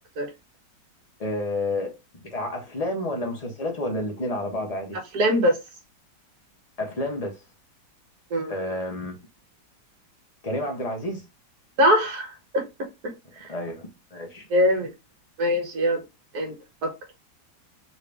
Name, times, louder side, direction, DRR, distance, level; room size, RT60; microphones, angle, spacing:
voice 1, 1.2-5.0 6.8-7.4 8.5-9.2 10.4-11.2 13.5-14.5, left 1 dB, 30° left, 0.8 m, -30 dB
voice 2, 5.1-5.6 8.3-8.5 11.8-13.5 14.5-14.9 15.4-16.0 16.3-16.5 16.8-16.9, equal, 60° right, 1.6 m, -23 dB
3.7 x 2.7 x 3.3 m
omnidirectional pair, 1.9 m